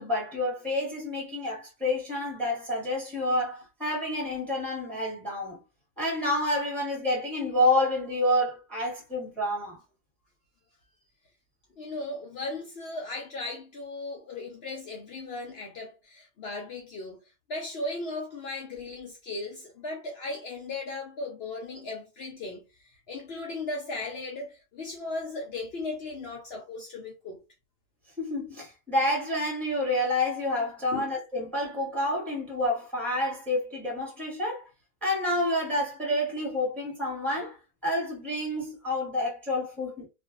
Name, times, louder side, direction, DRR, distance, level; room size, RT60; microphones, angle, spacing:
voice 1, 0.0-5.6 6.0-9.8 28.2-34.7 35.0-37.6 37.8-40.1, left 1 dB, ahead, 0.9 m, -28 dB
voice 2, 11.8-17.2 17.5-22.6 23.1-27.4 30.9-31.1, left 2 dB, 75° left, 0.5 m, -37 dB
2.5 x 2.2 x 2.4 m
omnidirectional pair, 1.7 m